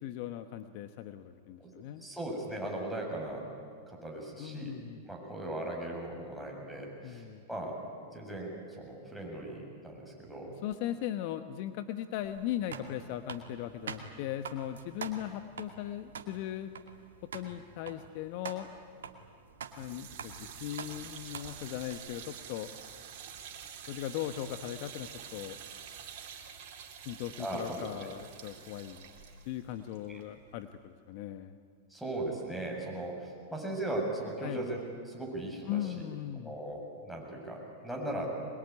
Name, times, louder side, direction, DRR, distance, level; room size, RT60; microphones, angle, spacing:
voice 1, 0.0-2.0 4.4-5.0 7.0-7.4 10.6-16.7 17.3-18.7 19.8-22.7 23.9-25.6 27.0-29.1 29.5-31.6 34.4-34.7 35.7-36.5, left 12 dB, 55° left, 10 dB, 1.2 m, -38 dB
voice 2, 2.0-3.5 3.9-4.7 5.0-7.8 8.1-10.5 27.4-27.8 30.1-30.2 31.9-34.8 35.1-35.8 36.4-38.4, right 1 dB, ahead, 0 dB, 7.5 m, -38 dB
sound 1, 12.2-22.0, right 6 dB, 85° right, 2.3 m, -46 dB
sound 2, 19.7-30.8, right 8 dB, 55° right, 4.0 m, -48 dB
24.0 x 21.5 x 9.7 m, 2.2 s
hypercardioid pair, 115°, 0 cm